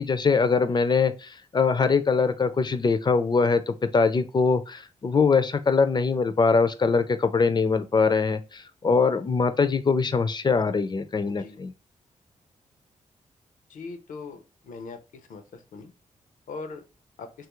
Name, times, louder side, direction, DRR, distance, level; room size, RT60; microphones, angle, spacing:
voice 1, 0.0-11.7, left 4 dB, 35° left, 0.4 m, -23 dB
voice 2, 11.3-11.6 13.7-14.4 14.7-15.0 15.3-15.4 15.7-15.9 16.5-16.8 17.2-17.3, left 4 dB, 80° left, 0.5 m, -39 dB
3.0 x 2.4 x 2.9 m
cardioid pair, 70°, 13 cm